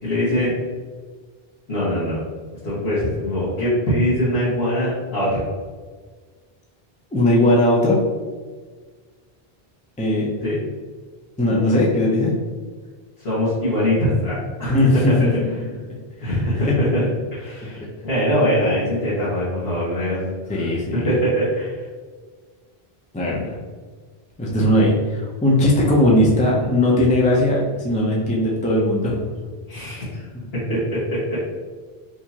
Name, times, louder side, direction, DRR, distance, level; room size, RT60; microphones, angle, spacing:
voice 1, 0.0-0.5 1.7-2.2 2.6-5.4 10.4-10.6 13.2-15.1 16.2-17.1 17.3-20.3 20.5-20.7 20.9-21.8 29.7-30.2 30.5-31.4, equal, 80° left, -12 dB, 1.8 m, -22 dB
voice 2, 7.1-8.0 10.0-10.3 11.4-12.3 14.7-15.3 16.2-16.3 16.7-16.8 17.8-17.9 20.5-21.2 23.1-23.6 24.4-29.2, left 1 dB, 10° left, -4 dB, 0.5 m, -18 dB
4.7 x 2.8 x 2.8 m, 1.5 s
omnidirectional pair, 1.0 m